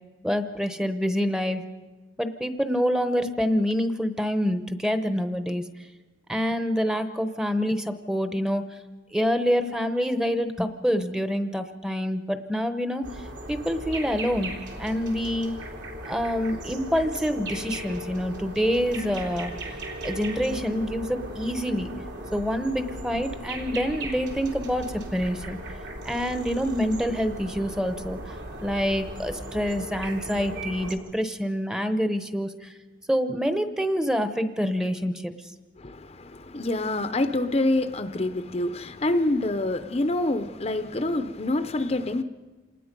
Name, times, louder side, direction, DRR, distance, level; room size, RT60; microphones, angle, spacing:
voice 1, 0.2-1.6 2.2-5.7 6.3-8.7 9.1-13.1 13.5-15.5 16.0-19.5 20.0-21.9 22.3-25.6 26.0-28.2 28.6-32.7 33.1-35.3, equal, 5° right, 9 dB, 0.9 m, -26 dB
sound 1, 13.0-30.9, right 1 dB, 75° right, 3.1 m, -37 dB
voice 2, 35.8-42.2, left 2 dB, 35° left, 9 dB, 0.7 m, -26 dB
27.5 x 19.5 x 5.3 m, 1.2 s
head